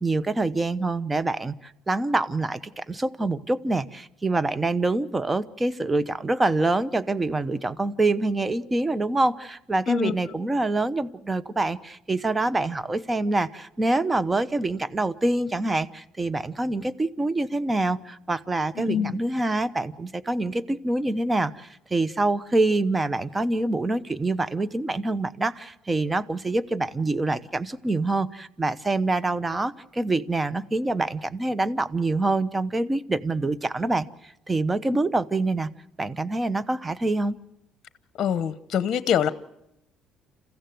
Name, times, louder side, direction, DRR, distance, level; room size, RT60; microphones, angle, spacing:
voice 1, 0.0-35.7 36.0-37.4, right 2 dB, 20° right, 17 dB, 0.9 m, -26 dB
voice 2, 18.8-19.1 38.2-39.3, left 9 dB, 50° left, 14 dB, 0.9 m, -24 dB
28.5 x 15.0 x 7.8 m, 0.85 s
supercardioid pair, 75°, 0 cm